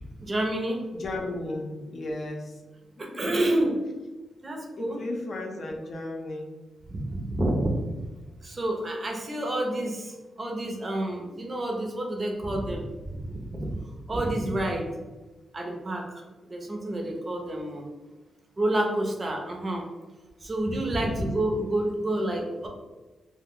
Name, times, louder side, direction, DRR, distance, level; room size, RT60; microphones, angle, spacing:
voice 1, 0.2-0.8 3.0-3.8 4.4-5.1 6.9-7.8 8.4-12.9 13.3-13.8 14.1-14.9 15.5-16.1 16.4-17.9 18.6-19.9 20.4-22.7, right 1 dB, 30° right, 1 dB, 0.6 m, -29 dB
voice 2, 1.0-2.4 4.8-6.5 20.8-21.2, left 2 dB, 55° left, 0 dB, 0.6 m, -34 dB
2.2 x 2.1 x 3.6 m, 1.2 s
cardioid pair, 100°, 0 cm